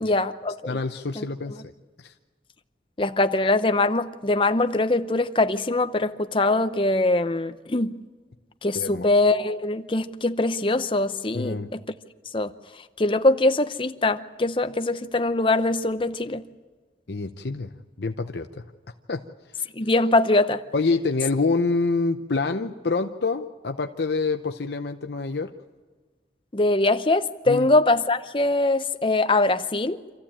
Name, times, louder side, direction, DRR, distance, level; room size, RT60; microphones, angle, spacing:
voice 1, 0.0-0.8 1.2-1.3 3.0-8.0 8.6-11.8 12.3-12.5 13.0-16.4 19.7-20.6 26.5-30.0, left 2 dB, 30° left, 0.8 m, -22 dB
voice 2, 0.7-1.6 2.0-2.1 8.7-9.1 11.3-11.7 17.1-17.7 18.0-18.6 19.1-19.2 20.7-25.5 27.5-27.7, left 3 dB, 70° left, 0.8 m, -26 dB
26.5 x 14.5 x 8.8 m
head